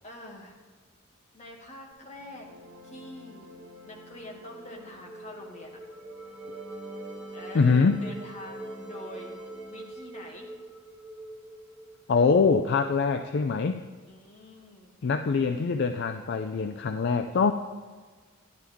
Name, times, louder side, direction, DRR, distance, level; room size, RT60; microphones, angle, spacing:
voice 1, 0.0-0.6 1.3-2.5 2.8-3.5 3.8-5.8 7.3-9.3 9.7-10.5 14.1-15.0, left 1 dB, 35° left, -1 dB, 1.7 m, -45 dB
sound 1, 2.0-9.9, right 2 dB, 80° right, 1.5 m, -48 dB
sound 2, 3.3-12.5, right 1 dB, 5° right, 1.0 m, -44 dB
voice 2, 7.5-8.0 12.1-13.8 15.0-17.5, left 4 dB, 55° left, 8 dB, 0.4 m, -24 dB
11.5 x 11.0 x 3.5 m, 1.4 s
head